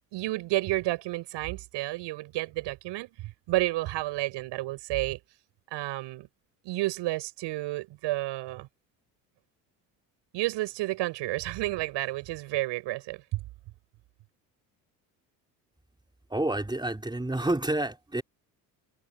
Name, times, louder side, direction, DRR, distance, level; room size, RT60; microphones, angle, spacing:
voice 1, 0.1-5.2 5.7-6.3 6.6-8.7 10.3-13.4, right 18 dB, 70° right, 7.4 m, -31 dB
voice 2, 16.3-18.2, right 1 dB, 10° right, 3.7 m, -29 dB
supercardioid pair, 70°, 44 cm